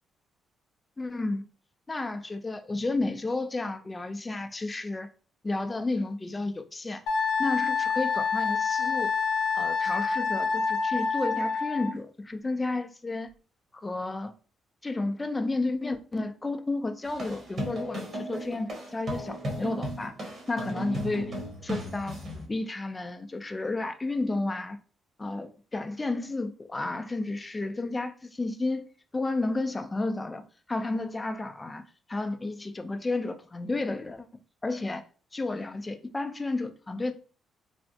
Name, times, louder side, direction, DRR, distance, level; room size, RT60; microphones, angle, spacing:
voice 1, 1.0-1.4 1.9-5.1 5.4-7.0 7.4-9.1 9.6-13.3 13.7-14.3 14.8-20.2 20.5-21.3 21.6-22.2 22.5-24.8 25.2-28.8 29.1-31.8 32.1-34.3 34.6-35.0 35.3-37.1, left 2 dB, 20° left, 0.4 m, -32 dB
Wind instrument woodwind instrument, 7.1-11.9, left 5 dB, 70° left, 0.6 m, -27 dB
sound 1, 17.0-22.4, equal, 50° right, 1.3 m, -35 dB
3.3 x 2.0 x 2.7 m
cardioid pair, 90°, 0 cm